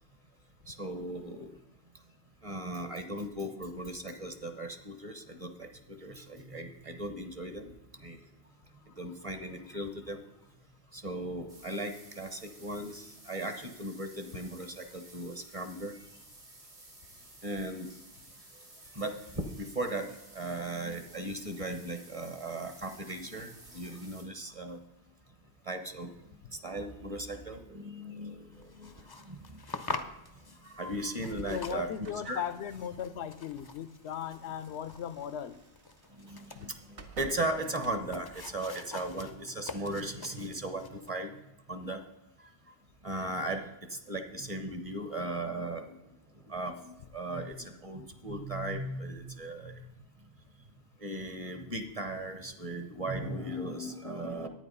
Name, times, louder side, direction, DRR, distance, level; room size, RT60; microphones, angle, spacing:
voice 1, 0.7-1.5 2.4-7.7 8.0-8.2 8.8-10.2 10.9-16.1 17.4-17.9 18.9-24.8 25.6-30.1 30.6-31.9 32.2-32.4 36.1-41.4 41.7-42.0 42.4-42.5 43.0-46.0 46.4-50.3 51.0-54.5, right 1 dB, 30° right, 7 dB, 1.0 m, -37 dB
sound 1, 11.5-24.2, right 2 dB, 80° right, 3.4 m, -54 dB
sound 2, 28.5-41.1, left 3 dB, 30° left, 0.5 m, -46 dB
voice 2, 31.5-35.6, left 9 dB, 75° left, 13 dB, 0.8 m, -37 dB
sound 3, 32.0-38.9, right 3 dB, 55° right, 1.2 m, -52 dB
10.5 x 9.0 x 5.4 m, 0.96 s
omnidirectional pair, 1.2 m